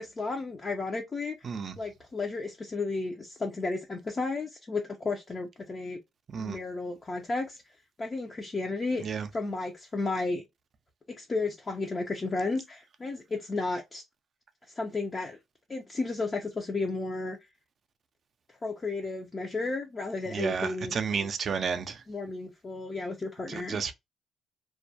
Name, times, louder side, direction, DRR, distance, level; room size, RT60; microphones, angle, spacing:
voice 1, 0.0-1.5 1.8-6.0 6.4-7.6 8.0-9.1 9.3-10.4 11.1-14.0 14.7-15.4 15.7-17.5 18.5-21.3 22.1-23.8, left 3 dB, 35° left, 0.5 m, -33 dB
voice 2, 1.4-1.8 6.3-6.6 9.0-9.3 20.3-22.0 23.5-23.9, right 6 dB, 50° right, 0.4 m, -32 dB
2.3 x 2.1 x 2.6 m
cardioid pair, 90°, 0 cm